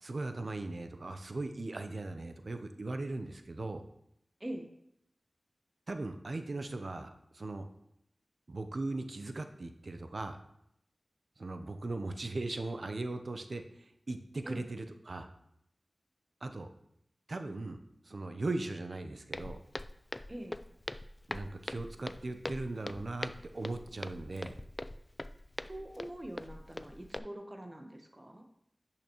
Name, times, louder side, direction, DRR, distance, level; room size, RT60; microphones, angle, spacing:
voice 1, 0.0-3.8 5.9-7.7 8.5-10.4 11.4-15.3 16.4-16.7 17.3-19.6 21.3-24.6, right 2 dB, 70° right, 8 dB, 0.7 m, -39 dB
Walk footsteps, 19.3-27.2, left 1 dB, 35° left, 0.3 m, -43 dB
voice 2, 25.7-28.4, right 1 dB, 30° right, 4 dB, 1.1 m, -43 dB
10.5 x 5.8 x 3.0 m, 0.76 s
wide cardioid pair, 50°, 0 cm